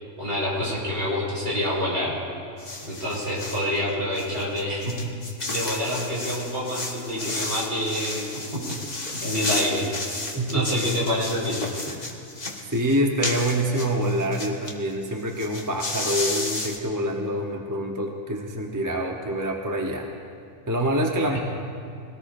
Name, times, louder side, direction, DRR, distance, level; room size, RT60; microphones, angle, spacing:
voice 1, 0.2-2.1 2.8-5.1 5.5-8.8 9.1-9.9 10.5-11.6 21.3-21.4, left 1 dB, 55° right, -6 dB, 5.1 m, -27 dB
sound 1, 2.6-3.7 4.1-14.7 15.0-15.1 15.3-16.8, left 2 dB, 35° left, 1.5 m, -32 dB
voice 2, 10.3-10.8 11.9-12.2 12.6-20.1 20.7-21.4, right 1 dB, 15° right, 1 dB, 0.9 m, -26 dB
23.5 x 18.0 x 2.6 m, 2.5 s
omnidirectional pair, 1.3 m